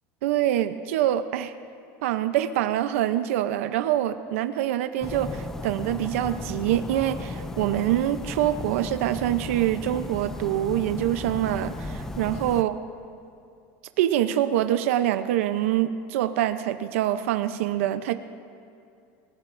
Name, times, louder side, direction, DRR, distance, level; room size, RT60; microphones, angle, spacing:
voice 1, 0.2-1.5 2.0-12.7 14.0-18.1, right 12 dB, 85° right, 10 dB, 0.6 m, -25 dB
sound 1, 5.0-12.6, left 2 dB, 5° left, 0.4 m, -35 dB
28.0 x 14.5 x 2.6 m, 2.5 s
cardioid pair, 170°, 7 cm